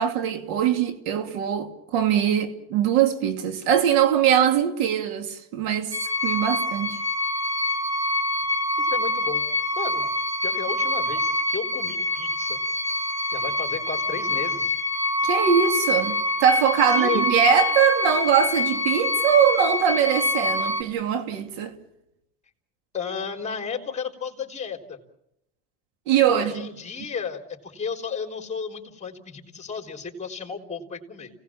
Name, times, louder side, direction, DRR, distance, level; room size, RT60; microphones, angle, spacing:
voice 1, 0.0-7.0 15.2-21.8 26.1-26.7, right 8 dB, 90° right, 2.9 m, -22 dB
sound 1, 5.9-20.8, left 2 dB, 10° right, 4.9 m, -25 dB
voice 2, 8.8-9.5 9.7-10.1 10.4-12.6 13.3-14.7 16.9-17.3 22.9-25.0 26.3-31.3, left 5 dB, 25° left, 3.8 m, -33 dB
29.5 x 18.5 x 7.4 m
supercardioid pair, 115°, 30 cm